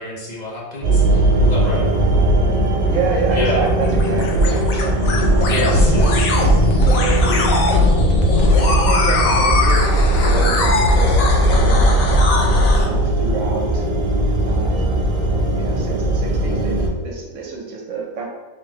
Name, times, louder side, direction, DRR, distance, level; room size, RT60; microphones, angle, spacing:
voice 1, 0.0-1.9 3.3-3.6 5.5-6.6, left 2 dB, 40° left, -3 dB, 0.7 m, -27 dB
sound 1, 0.8-16.9, right 1 dB, 40° right, 0.6 m, -19 dB
voice 2, 2.9-5.7 6.8-7.5 8.6-12.0 12.7-13.9 14.5-15.1 15.5-18.3, right 4 dB, 65° right, -1 dB, 1.0 m, -28 dB
sound 2, 3.0-12.9, left 1 dB, 75° left, 1.1 m, -17 dB
3.3 x 3.3 x 3.2 m, 1.2 s
omnidirectional pair, 1.5 m